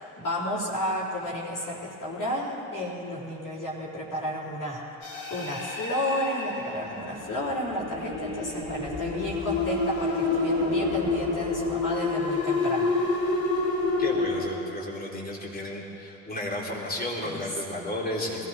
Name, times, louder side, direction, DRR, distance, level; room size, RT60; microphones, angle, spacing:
voice 1, 0.2-4.9 5.3-12.9 17.2-17.4, left 1 dB, 50° left, -8 dB, 3.9 m, -32 dB
sound 1, 5.0-14.4, left 3 dB, 80° left, 2.8 m, -28 dB
voice 2, 14.0-18.5, left 1 dB, 20° left, -3 dB, 3.7 m, -33 dB
22.0 x 16.0 x 3.6 m, 2.9 s
hypercardioid pair, 55°, 41 cm